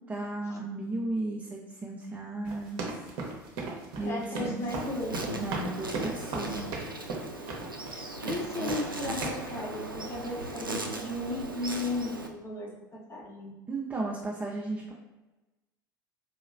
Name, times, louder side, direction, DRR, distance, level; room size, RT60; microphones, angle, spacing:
voice 1, 0.1-2.8 4.0-4.6 5.3-6.7 13.7-14.9, right 2 dB, 15° right, -3 dB, 0.5 m, -34 dB
sound 1, 2.4-8.0 8.3-8.9 9.2-9.5, right 3 dB, 50° right, 0.8 m, -36 dB
voice 2, 4.0-5.1 7.9-13.5, left 2 dB, 25° left, -2 dB, 0.9 m, -35 dB
Insect, 4.7-12.3, right 2 dB, 90° right, 0.4 m, -38 dB
4.1 x 2.9 x 2.5 m, 1.1 s
figure-of-eight pair, 70°, 11 cm